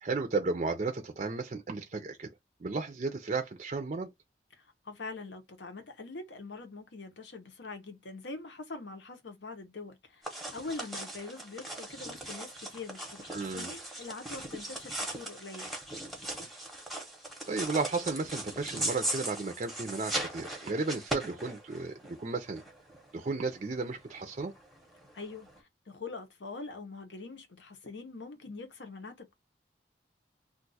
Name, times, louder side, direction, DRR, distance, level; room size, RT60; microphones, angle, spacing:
voice 1, 0.0-2.3 2.6-4.1 13.3-13.7 17.5-22.6 23.1-24.5, right 3 dB, 40° right, 0.4 m, -34 dB
voice 2, 4.6-15.8 25.1-29.3, left 3 dB, 80° left, 0.8 m, -44 dB
sound 1, 10.2-25.6, right 1 dB, ahead, 0.8 m, -39 dB
2.4 x 2.3 x 3.9 m
head